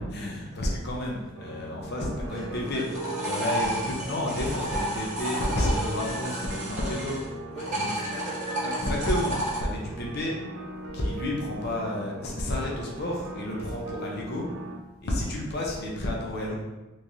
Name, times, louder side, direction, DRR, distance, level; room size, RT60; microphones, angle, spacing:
voice 1, 0.1-2.8 3.2-7.2 7.7-7.9 8.6-10.4 10.9-14.5 15.0-16.6, left 1 dB, 50° left, -2 dB, 0.6 m, -30 dB
sound 1, 1.4-14.8, right 2 dB, 85° right, 0.6 m, -39 dB
voice 2, 2.2-3.4 7.5-8.8 13.6-13.8, right 1 dB, ahead, -15 dB, 1.0 m, -40 dB
sound 2, 2.7-7.2 7.6-9.6, right 1 dB, 35° right, 1.0 m, -32 dB
3.7 x 3.1 x 2.7 m, 1.1 s
head